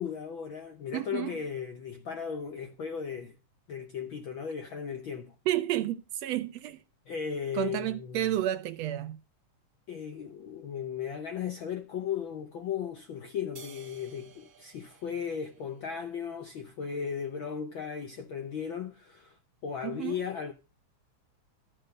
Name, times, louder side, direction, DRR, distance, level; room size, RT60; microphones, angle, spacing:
voice 1, 0.0-3.4 3.7-5.3 7.1-8.3 9.9-20.5, left 7 dB, 70° left, 1.2 m, -36 dB
voice 2, 0.9-1.4 5.5-6.8 7.5-9.2 19.8-20.2, right 13 dB, 75° right, 1.7 m, -31 dB
sound 1, 13.6-16.2, right 6 dB, 45° right, 1.2 m, -54 dB
13.5 x 6.7 x 5.4 m
omnidirectional pair, 3.3 m